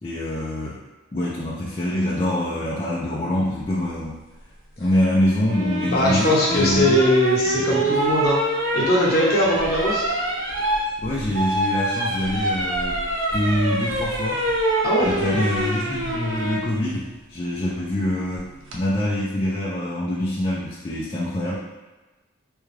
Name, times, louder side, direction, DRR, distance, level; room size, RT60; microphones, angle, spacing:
voice 1, 0.0-0.8 1.1-4.2 4.8-7.0 7.4-8.0 11.0-13.0 13.3-14.5 15.0-21.6, left 1 dB, 25° left, -8 dB, 0.4 m, -25 dB
sound 1, 5.5-16.7 18.3-18.8, right 1 dB, 80° right, 0.7 m, -25 dB
voice 2, 5.8-8.4 8.7-10.0 14.8-15.4, left 1 dB, 50° left, -5 dB, 0.9 m, -20 dB
3.5 x 2.2 x 3.3 m, 1.2 s
head